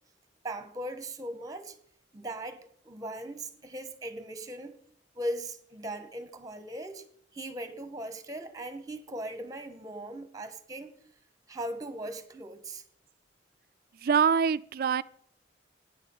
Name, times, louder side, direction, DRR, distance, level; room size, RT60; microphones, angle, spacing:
voice 1, 0.4-1.8 2.1-4.8 5.1-7.0 7.3-10.9 11.5-12.8, right 1 dB, 20° right, 9 dB, 0.9 m, -39 dB
voice 2, 14.0-15.0, right 6 dB, 50° right, 18 dB, 0.3 m, -24 dB
9.2 x 5.6 x 7.0 m, 0.64 s
head